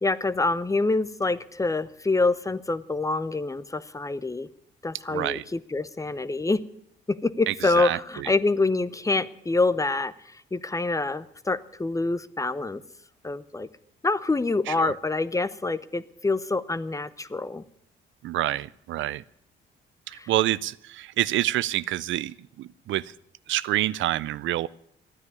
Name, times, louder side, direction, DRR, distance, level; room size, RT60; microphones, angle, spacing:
voice 1, 0.0-4.5 4.8-6.6 7.1-12.8 13.2-13.7 14.0-17.6 20.1-20.3, left 3 dB, 15° left, 16 dB, 0.8 m, -26 dB
voice 2, 5.1-5.4 7.5-8.0 14.7-14.9 18.2-19.2 20.1-23.1 23.5-24.7, right 14 dB, 75° right, 19 dB, 0.5 m, -27 dB
13.5 x 9.8 x 9.6 m, 0.71 s
cardioid pair, 90°, 20 cm